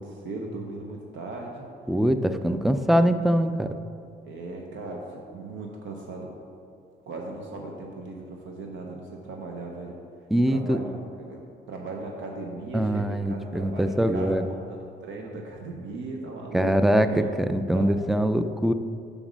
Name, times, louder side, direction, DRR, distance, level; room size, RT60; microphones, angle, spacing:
voice 1, 0.0-1.7 2.4-2.6 4.2-6.3 7.1-10.0 10.5-11.4 11.7-17.3 17.7-17.9, right 3 dB, 75° right, 0 dB, 0.8 m, -38 dB
voice 2, 1.9-3.7 10.3-10.8 12.7-14.5 16.5-18.7, equal, ahead, 9 dB, 0.3 m, -23 dB
5.3 x 4.9 x 6.1 m, 2.4 s
cardioid pair, 90°, 20 cm